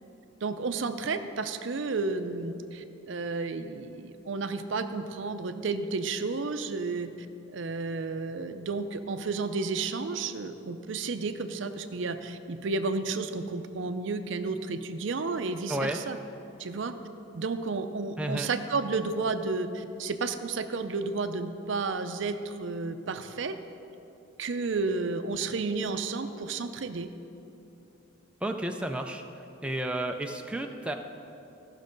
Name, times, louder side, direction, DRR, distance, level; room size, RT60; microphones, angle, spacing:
voice 1, 0.4-7.1 7.5-16.2 16.6-16.9 17.3-23.6 24.4-27.1, right 4 dB, 65° right, 9 dB, 0.5 m, -32 dB
voice 2, 18.2-18.5 28.4-29.2 29.6-31.0, right 1 dB, 5° right, 3 dB, 0.4 m, -31 dB
15.0 x 6.3 x 5.2 m, 2.9 s
head